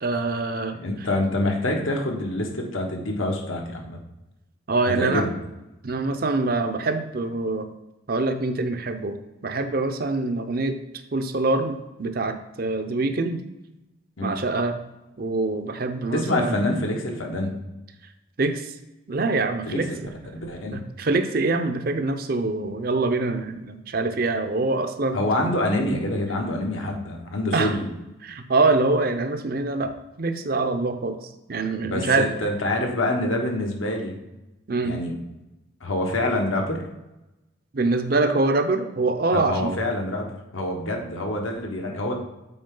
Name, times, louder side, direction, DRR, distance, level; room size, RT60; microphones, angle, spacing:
voice 1, 0.0-0.8 4.7-5.3 5.8-7.7 8.1-10.8 11.1-13.4 14.2-14.8 15.2-16.6 18.4-18.7 19.1-19.9 20.7-25.2 27.5-27.8 28.2-29.9 30.2-31.2 31.5-32.3 34.7-35.0 37.7-39.7, right 3 dB, 50° right, 8 dB, 0.6 m, -24 dB
voice 2, 0.8-4.0 5.0-5.3 14.2-14.3 16.1-17.5 19.6-20.0 20.4-20.8 25.1-27.9 31.8-34.1 34.8-35.1 35.8-36.8 39.3-42.1, left 1 dB, 85° left, 1 dB, 1.3 m, -26 dB
7.8 x 4.6 x 3.8 m, 0.97 s
head